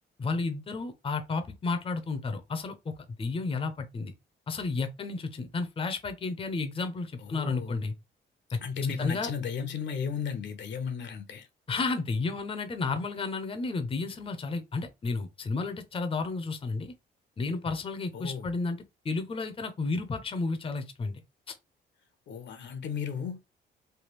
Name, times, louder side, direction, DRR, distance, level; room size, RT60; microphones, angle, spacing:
voice 1, 0.2-2.9 3.2-4.1 4.5-7.9 9.0-9.3 11.7-16.9 17.4-18.8 19.0-21.2 21.5-21.6, left 3 dB, 30° left, 0.6 m, -32 dB
voice 2, 7.2-7.8 8.6-11.5 18.1-18.5 22.3-23.4, left 6 dB, 65° left, 0.8 m, -34 dB
3.3 x 2.3 x 3.0 m
cardioid pair, 90°, 20 cm